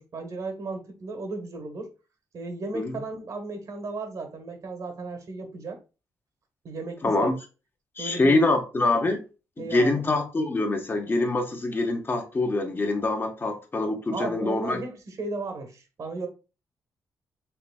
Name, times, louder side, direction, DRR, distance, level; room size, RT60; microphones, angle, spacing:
voice 1, 0.0-1.9 2.3-5.8 6.6-7.3 8.0-8.4 9.6-10.0 14.1-16.3, right 3 dB, 60° right, 1.2 m, -35 dB
voice 2, 7.0-7.3 8.0-9.3 9.6-14.8, left 2 dB, 30° left, 1.1 m, -25 dB
5.7 x 3.3 x 2.3 m
cardioid pair, 80°, 7 cm